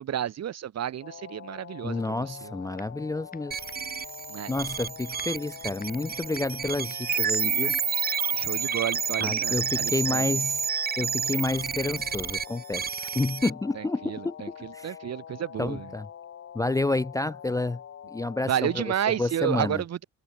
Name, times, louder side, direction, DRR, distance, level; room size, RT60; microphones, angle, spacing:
voice 1, 0.0-2.6 4.3-4.5 8.3-10.2 13.8-15.9 18.5-20.0, right 10 dB, 60° right, 1.6 m, -31 dB
sound 1, 1.0-19.2, left 9 dB, 45° left, 1.3 m, -45 dB
voice 2, 1.8-3.6 4.5-7.7 9.2-10.6 11.0-14.4 14.7-15.0 15.6-16.1 16.5-17.8 18.1-18.8 19.2-19.8, left 2 dB, 10° left, 0.4 m, -29 dB
sound 2, 2.3-3.0 3.3-8.3, left 4 dB, 30° left, 5.2 m, -51 dB
sound 3, 3.5-13.5, right 7 dB, 30° right, 0.7 m, -30 dB
cardioid pair, 90°, 30 cm